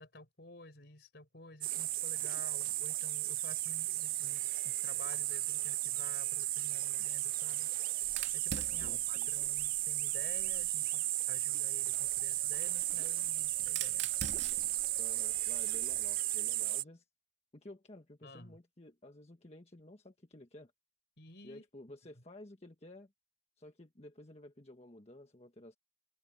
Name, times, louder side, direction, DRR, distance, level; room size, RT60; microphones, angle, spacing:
voice 1, 0.0-14.1 18.2-18.6 21.2-21.6, left 2 dB, 60° left, 5.1 m, -53 dB
sound 1, 1.6-16.8, right 17 dB, 50° right, 0.3 m, -34 dB
Fire, 8.0-10.8 11.9-16.2, right 7 dB, 80° right, 2.4 m, -46 dB
voice 2, 8.8-9.3 15.0-17.1 17.5-20.7 21.4-23.1 23.6-25.8, left 1 dB, 35° left, 1.4 m, -53 dB
head